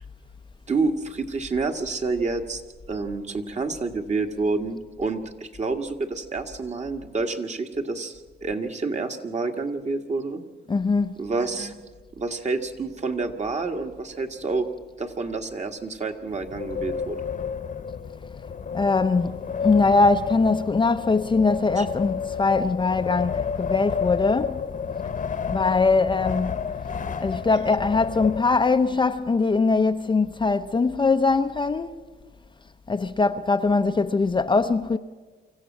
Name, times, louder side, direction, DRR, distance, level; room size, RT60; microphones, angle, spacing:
voice 1, 0.7-2.6 2.9-10.4 11.2-11.7 12.2-14.7 15.0-17.2 21.8-21.9, right 3 dB, 35° right, 1.8 m, -28 dB
voice 2, 10.7-11.2 18.7-24.6 25.5-26.7 27.2-31.9 32.9-35.0, left 3 dB, 25° left, 0.7 m, -22 dB
Wind, 16.3-28.9, left 6 dB, 40° left, 1.1 m, -31 dB
25.0 x 14.5 x 7.4 m
cardioid pair, 90°, 20 cm